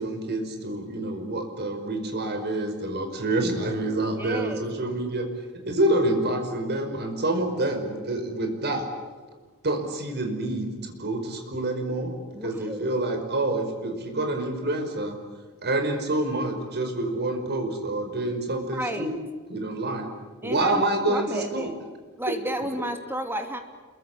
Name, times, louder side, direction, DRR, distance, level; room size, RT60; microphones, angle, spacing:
voice 1, 0.0-5.3 5.7-8.9 9.6-12.1 12.4-15.2 15.6-19.1 19.5-20.1 20.4-21.7 22.8-22.9, right 2 dB, 50° right, 5 dB, 5.2 m, -27 dB
voice 2, 4.2-4.6 12.3-12.9 18.7-19.1 20.4-21.7 22.2-23.6, right 1 dB, 10° right, 5 dB, 2.8 m, -32 dB
27.5 x 23.0 x 8.5 m, 1.4 s
head